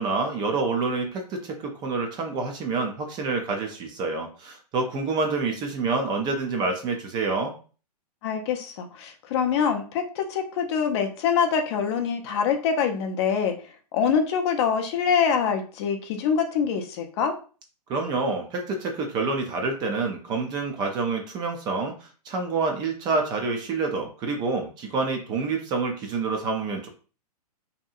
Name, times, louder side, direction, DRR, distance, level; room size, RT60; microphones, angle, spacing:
voice 1, 0.0-7.5 17.9-21.9 22.3-26.9, right 3 dB, 20° right, 2 dB, 0.4 m, -27 dB
voice 2, 8.2-13.6 13.9-17.4, left 6 dB, 40° left, 5 dB, 0.5 m, -25 dB
2.8 x 2.5 x 2.3 m, 0.37 s
hypercardioid pair, 130°, 21 cm